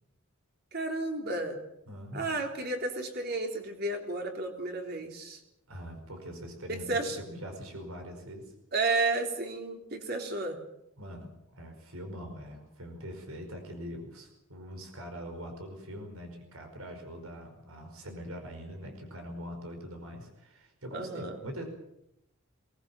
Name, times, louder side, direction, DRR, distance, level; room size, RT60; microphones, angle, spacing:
voice 1, 0.7-1.6 2.1-5.4 6.7-7.2 8.7-10.6 20.9-21.4, right 2 dB, 50° right, 3 dB, 3.7 m, -32 dB
voice 2, 1.9-2.3 5.7-8.5 11.0-21.6, equal, 90° right, 4 dB, 5.1 m, -43 dB
23.0 x 19.5 x 7.3 m, 0.81 s
head